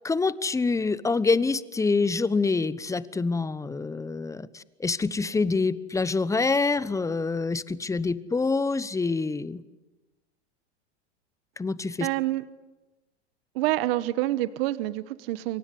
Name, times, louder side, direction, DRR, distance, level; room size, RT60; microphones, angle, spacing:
voice 1, 0.0-9.6 11.6-12.1, left 4 dB, 10° left, 17 dB, 1.0 m, -26 dB
voice 2, 12.0-12.4 13.5-15.6, right 16 dB, 60° right, 15 dB, 1.2 m, -27 dB
29.5 x 24.0 x 8.5 m, 1.1 s
hypercardioid pair, 105°, 33 cm